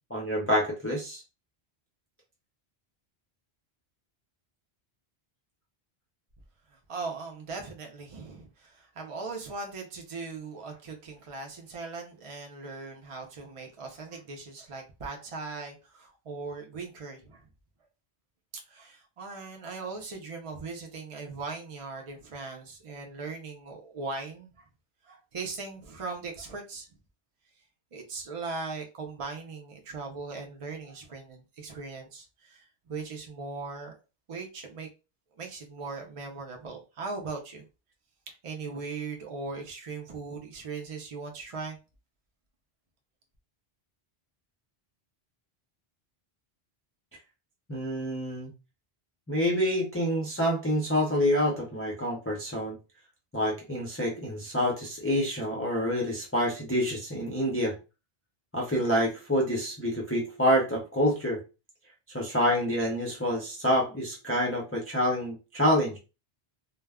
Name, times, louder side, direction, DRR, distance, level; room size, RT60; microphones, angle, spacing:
voice 1, 0.1-1.2 47.7-48.5 49.3-52.8 53.3-57.8 58.5-61.4 62.1-66.0, equal, 20° left, 0.4 m, -27 dB
voice 2, 6.9-17.4 18.5-24.7 25.1-26.9 27.9-33.9 34.3-34.9 35.4-37.6 38.3-41.8, right 4 dB, 45° right, 0.4 m, -39 dB
2.2 x 2.0 x 3.4 m
omnidirectional pair, 1.1 m